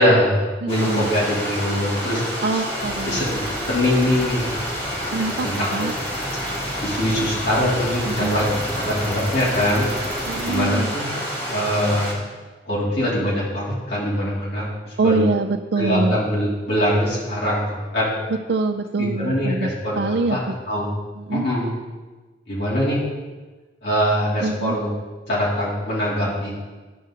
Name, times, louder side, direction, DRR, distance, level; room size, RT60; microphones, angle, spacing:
voice 1, 0.0-2.2 2.5-2.6 3.1-3.3 3.7-4.5 5.4-5.9 6.8-9.9 10.4-11.1 11.5-12.1 12.6-15.2 15.8-18.1 19.0-20.4 20.7-20.9 21.3-21.7 22.5-23.0 23.8-24.9 25.3-26.6, equal, 70° left, -7 dB, 2.9 m, -22 dB
voice 2, 0.6-1.1 2.4-3.2 5.1-5.9 8.1-8.5 10.3-10.9 15.0-16.2 18.5-19.7 20.0-20.5 21.2-21.5 24.4-24.8, right 3 dB, 70° right, 4 dB, 0.5 m, -24 dB
Stream, 0.7-12.1, equal, 35° left, 2.8 m, -29 dB
sound 1, 2.8-10.6, right 1 dB, 10° right, 2.7 m, -35 dB
11.5 x 5.5 x 3.8 m, 1.3 s
head